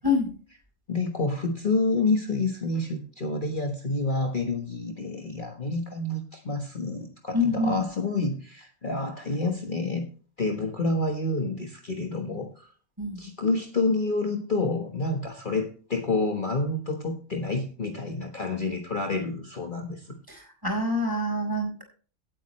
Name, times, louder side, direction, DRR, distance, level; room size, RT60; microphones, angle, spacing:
voice 1, 0.9-10.1 10.4-12.7 13.2-20.2, left 3 dB, 40° left, 3 dB, 1.5 m, -28 dB
voice 2, 7.3-7.8 13.0-13.2 20.3-21.8, left 2 dB, 15° right, 1 dB, 4.4 m, -26 dB
17.5 x 9.0 x 3.2 m, 0.40 s
omnidirectional pair, 1.4 m